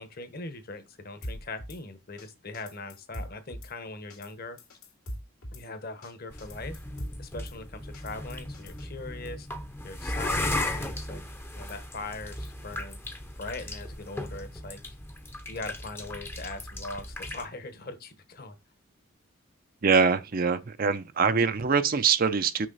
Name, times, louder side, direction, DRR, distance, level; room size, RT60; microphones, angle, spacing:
voice 1, 0.0-4.6 5.5-6.8 7.2-9.5 9.8-11.2 11.5-13.0 13.4-14.9 15.5-18.6, left 3 dB, 45° left, 1.1 m, -41 dB
Drum kit / Snare drum, 1.2-1.8 2.2-2.3 2.5-3.7 4.1-4.3 4.6-5.6 6.0-6.1 6.4-7.6 7.9-8.9, equal, 80° left, 2.4 m, -41 dB
sound 1, 6.3-17.4, left 1 dB, 10° left, 0.7 m, -36 dB
voice 2, 19.8-22.7, right 5 dB, 40° right, 0.5 m, -24 dB
6.3 x 5.6 x 4.0 m
head